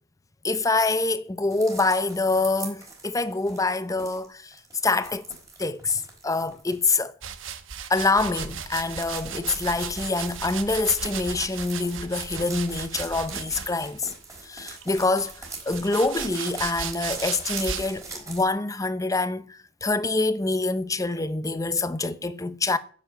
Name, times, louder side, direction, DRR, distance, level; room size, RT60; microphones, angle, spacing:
voice 1, 0.4-4.5 4.8-5.3 5.6-7.1 7.9-14.1 14.4-22.8, left 3 dB, 15° left, 0.7 m, -26 dB
sound 1, 1.5-7.0 8.5-18.5, right 3 dB, 15° right, 4.2 m, -42 dB
sound 2, 7.2-14.0 14.8-18.0, right 7 dB, 75° right, 1.2 m, -36 dB
10.5 x 7.5 x 8.6 m
head